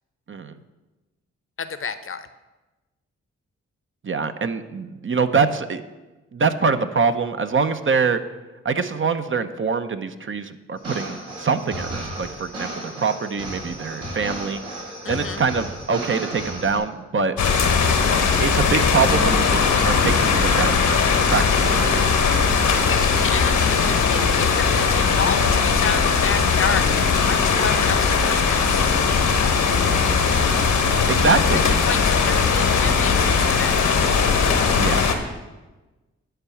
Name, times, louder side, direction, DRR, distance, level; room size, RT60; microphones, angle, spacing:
voice 1, 1.6-2.3 15.0-15.4 22.6-26.9 27.3-28.8 31.5-34.1, left 5 dB, 45° left, 11 dB, 0.7 m, -30 dB
voice 2, 4.0-5.8 6.3-8.2 8.6-14.6 15.1-17.4 18.1-21.0 21.3-22.2 31.1-31.7 34.7-35.0, right 5 dB, 40° right, 9 dB, 0.7 m, -24 dB
sound 1, 10.8-16.8, right 1 dB, 80° right, 3.9 m, -34 dB
sound 2, 17.4-35.1, left 5 dB, 80° left, 1.1 m, -19 dB
10.0 x 4.6 x 7.1 m, 1.1 s
supercardioid pair, 45°, 30 cm